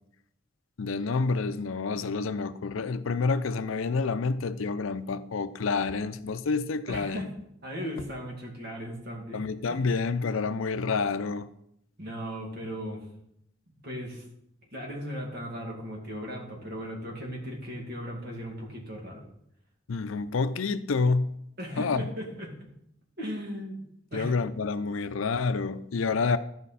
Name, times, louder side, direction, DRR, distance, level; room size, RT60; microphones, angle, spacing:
voice 1, 0.8-7.3 9.3-11.5 19.9-21.3 21.8-22.1 24.1-26.4, left 4 dB, 85° left, 0.5 m, -28 dB
voice 2, 6.9-7.3 7.6-9.4 9.7-9.9 12.0-13.0 13.7-14.2 14.7-19.2 21.6-22.5 23.2-23.9 24.1-24.4 26.0-26.1, equal, 50° right, 2.2 m, -37 dB
14.0 x 5.0 x 4.2 m
head